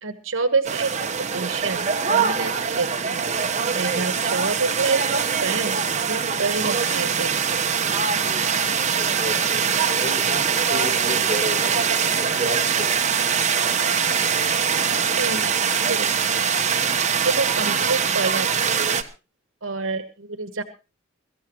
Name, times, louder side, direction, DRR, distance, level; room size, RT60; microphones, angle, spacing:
voice 1, 0.0-0.9 1.3-5.8 6.1-7.6 15.2-15.5 15.9-16.2 17.2-18.8 19.6-20.6, right 4 dB, 75° right, 9 dB, 1.2 m, -27 dB
sound 1, 0.6-19.0, right 6 dB, 35° right, 1.1 m, -23 dB
voice 2, 8.9-11.7 12.1-13.0, left 1 dB, 5° right, -3 dB, 5.0 m, -32 dB
23.0 x 14.0 x 3.0 m, 0.31 s
head